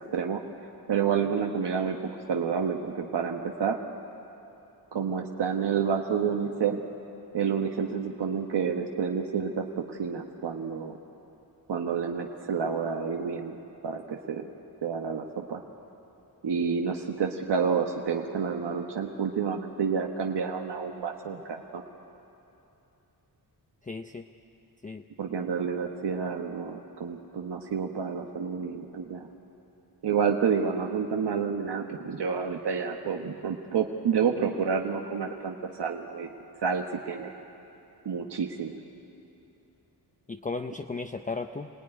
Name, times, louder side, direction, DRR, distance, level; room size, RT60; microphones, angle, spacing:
voice 1, 0.9-2.0 2.3-3.8 4.9-6.8 7.3-11.0 11.7-13.6 13.8-14.5 14.8-15.6 16.4-21.8 25.2-29.3 30.0-36.3 36.6-37.3 38.0-38.8, right 6 dB, 90° right, 2 dB, 1.2 m, -29 dB
voice 2, 23.8-24.3 24.8-25.0 40.3-41.7, left 3 dB, 20° left, 6 dB, 0.5 m, -35 dB
26.0 x 18.5 x 9.8 m, 2.9 s
wide cardioid pair, 145°, 40 cm